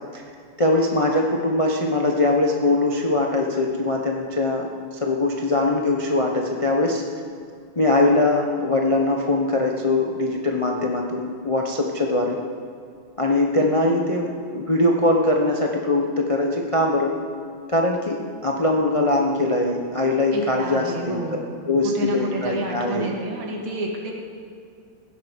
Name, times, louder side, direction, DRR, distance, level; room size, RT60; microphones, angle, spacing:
voice 1, 0.6-4.7 4.9-7.0 7.8-12.4 13.2-17.1 17.7-21.2 21.7-23.1, left 2 dB, 35° left, 0 dB, 0.5 m, -21 dB
voice 2, 13.6-14.0 20.3-24.1, right 2 dB, 75° right, -1 dB, 2.7 m, -30 dB
15.5 x 11.0 x 5.1 m, 2.3 s
omnidirectional pair, 2.2 m